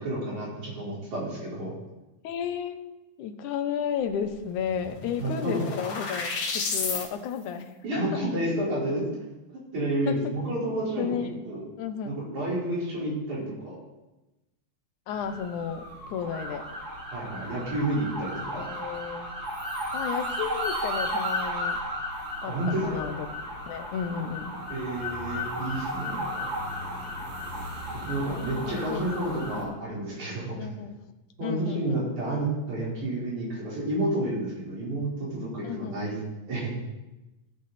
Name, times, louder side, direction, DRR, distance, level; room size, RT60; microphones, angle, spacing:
voice 1, 0.0-1.7 5.2-5.7 7.8-9.1 9.7-11.1 11.4-11.6 12.0-13.8 17.1-18.6 22.4-23.0 24.7-26.4 28.1-30.6 31.4-36.1 36.5-36.7, right 1 dB, 75° right, -7 dB, 5.8 m, -30 dB
voice 2, 2.2-2.8 3.2-6.3 6.5-8.2 10.1-10.2 11.0-11.3 11.8-12.3 15.1-16.7 18.6-19.3 19.9-21.8 22.4-22.6 22.8-23.3 23.7-24.5 28.6-29.9 30.6-31.0 31.4-32.1 35.6-36.0, left 8 dB, 90° left, 8 dB, 2.4 m, -33 dB
sound 1, 4.2-4.3 4.5-7.1, left 4 dB, 60° left, 2.5 m, -32 dB
sound 2, 15.1-29.6, equal, 30° right, 3.3 m, -34 dB
17.5 x 8.5 x 4.2 m, 1.0 s
omnidirectional pair, 3.4 m